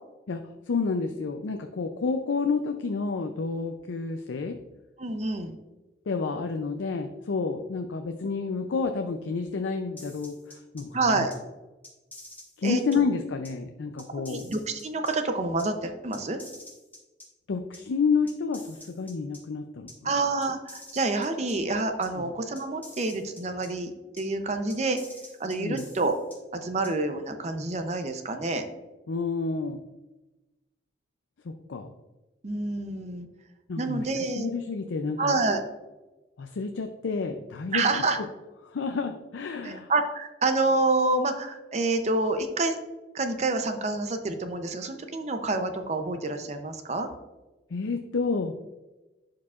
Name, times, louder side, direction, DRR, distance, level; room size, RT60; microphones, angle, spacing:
voice 1, 0.7-4.6 6.1-11.3 12.6-14.5 17.5-20.1 22.2-22.3 25.6-25.9 29.1-29.8 31.4-31.9 33.7-35.4 36.4-38.3 38.6-39.9 47.7-48.5, left 4 dB, 85° left, 6 dB, 0.5 m, -30 dB
voice 2, 5.0-5.6 10.9-11.3 12.6-12.8 14.1-16.4 20.0-25.0 25.4-26.1 26.5-28.7 32.4-33.3 33.8-34.5 35.2-35.6 37.7-38.2 39.6-42.8 43.1-47.1, right 3 dB, 35° right, 7 dB, 0.6 m, -28 dB
sound 1, 10.0-10.8 11.3-11.4 11.8-13.0 13.4-13.5 14.0-15.1 15.6-15.7 16.1-17.3 17.7-17.8 18.3-19.4 19.9-20.0 20.4-21.5 22.0-22.1 22.6-23.7 24.2-24.3 24.7-26.4 26.8-26.9, left 1 dB, 10° left, 1.2 m, -47 dB
11.0 x 4.8 x 2.4 m, 1.1 s
head